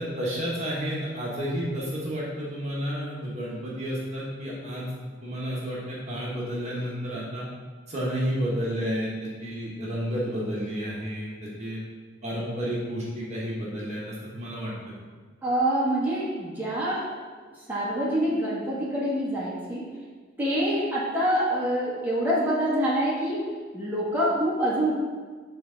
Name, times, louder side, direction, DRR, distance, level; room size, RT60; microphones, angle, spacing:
voice 1, 0.0-4.9 5.2-7.5 7.9-11.8 12.2-14.7, equal, 35° right, -5 dB, 1.2 m, -31 dB
voice 2, 15.4-17.2 17.7-19.9 20.4-23.5 23.7-24.9, equal, 10° right, -7 dB, 1.3 m, -26 dB
7.7 x 3.6 x 3.9 m, 1.5 s
head